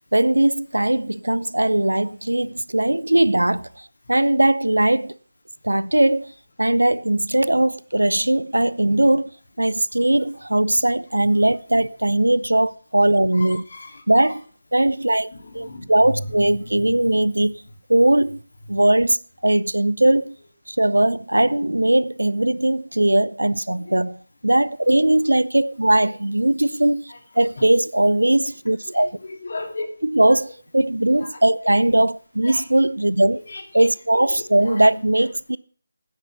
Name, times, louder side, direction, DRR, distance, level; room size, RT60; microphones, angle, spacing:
voice 1, 0.1-5.2 5.6-6.3 6.6-9.3 9.6-13.6 14.1-14.4 14.7-17.6 17.9-18.4 18.7-20.4 20.7-29.2 30.0-30.5 30.7-33.4 33.7-35.6, right 1 dB, 75° right, 0.4 m, -19 dB
voice 2, 13.4-14.0 15.3-16.3 16.6-16.9 23.8-23.9 26.0-26.1 27.1-27.2 28.9-29.9 30.2-30.3 31.2-31.3 32.4-32.6 33.4-33.9 34.2-34.9 35.2-35.3, left 2 dB, 50° left, 2.2 m, -35 dB
9.9 x 8.9 x 5.7 m
figure-of-eight pair, 155°, 0 cm